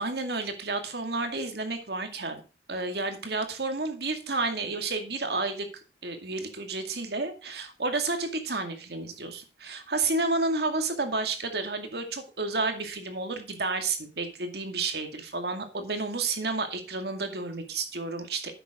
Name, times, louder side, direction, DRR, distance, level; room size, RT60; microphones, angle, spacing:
voice 1, 0.0-2.4 2.7-5.7 6.0-18.5, right 3 dB, 60° right, 6 dB, 2.2 m, -31 dB
10.5 x 8.1 x 3.7 m, 0.33 s
head